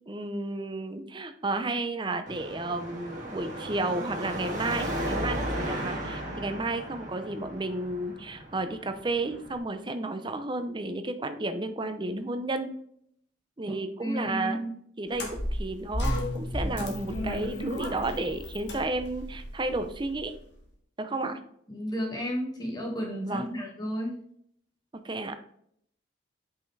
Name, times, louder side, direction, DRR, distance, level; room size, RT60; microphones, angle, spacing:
voice 1, 0.1-12.7 13.6-14.6 15.0-20.3 21.0-21.4 23.3-23.6 25.0-25.4, right 2 dB, 25° right, 8 dB, 0.6 m, -32 dB
Car passing by / Traffic noise roadway noise / Engine, 2.3-9.6, right 1 dB, 40° right, 1.8 m, -35 dB
voice 2, 13.7-14.7 15.2-15.3 16.5-16.7 21.7-24.2, equal, 20° left, -1 dB, 1.9 m, -33 dB
sound 1, 15.1-20.3, left 1 dB, 65° left, 1.6 m, -33 dB
5.6 x 5.6 x 3.3 m, 0.68 s
head